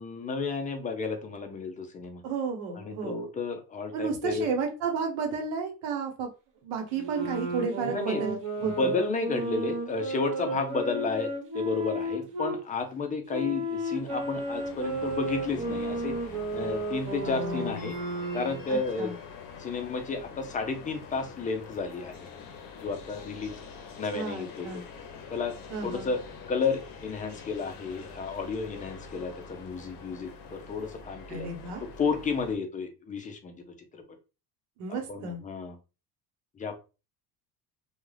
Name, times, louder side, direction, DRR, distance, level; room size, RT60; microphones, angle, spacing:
voice 1, 0.0-2.2 2.7-4.5 7.8-8.2 8.6-16.1 16.5-17.9 18.3-19.1 19.6-22.3 22.8-23.6 24.0-24.8 25.3-25.6 25.8-26.2 26.5-31.5 31.8-34.0 34.9-35.8 36.6-36.8, left 4 dB, 20° left, 6 dB, 0.4 m, -32 dB
voice 2, 2.2-3.2 3.9-6.3 6.6-8.9 17.2-17.9 18.7-19.1 24.1-24.8 25.7-26.1 31.3-31.8 34.8-35.4, right 5 dB, 85° right, 3 dB, 1.0 m, -32 dB
sound 1, 6.9-12.6 13.3-18.7, right 1 dB, 45° right, 1.2 m, -33 dB
sound 2, 13.8-32.6, left 5 dB, 50° left, 0.7 m, -45 dB
2.3 x 2.3 x 3.2 m, 0.31 s
cardioid pair, 125°, 43 cm